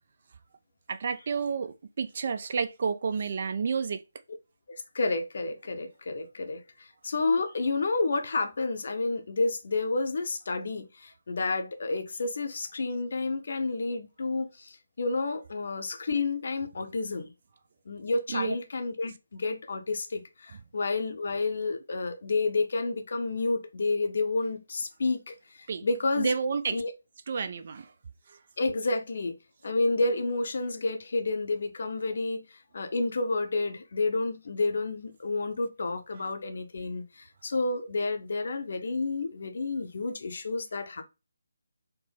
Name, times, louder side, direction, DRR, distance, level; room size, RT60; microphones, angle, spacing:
voice 1, 0.9-4.0 18.3-18.6 25.7-25.8 26.2-26.8 27.3-27.9 28.3-28.4, right 5 dB, 45° right, 0.4 m, -30 dB
voice 2, 4.9-17.3 17.9-26.3 26.7-26.9 28.6-29.4 29.6-32.4 32.7-41.0, left 3 dB, 50° left, 0.6 m, -30 dB
4.3 x 2.1 x 3.4 m
figure-of-eight pair, 150°, 0 cm